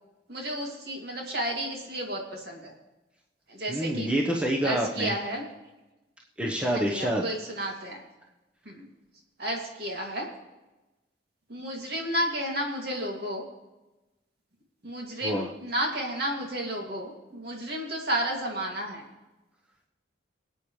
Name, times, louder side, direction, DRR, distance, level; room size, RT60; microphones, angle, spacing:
voice 1, 0.3-2.7 3.6-4.1 4.6-5.4 6.7-8.0 9.4-10.3 11.5-13.4 14.8-19.0, right 1 dB, 55° right, 0 dB, 2.4 m, -32 dB
voice 2, 3.7-5.2 6.4-7.3 15.2-15.5, right 1 dB, 5° right, -2 dB, 1.0 m, -27 dB
25.0 x 8.8 x 3.2 m, 1.0 s
head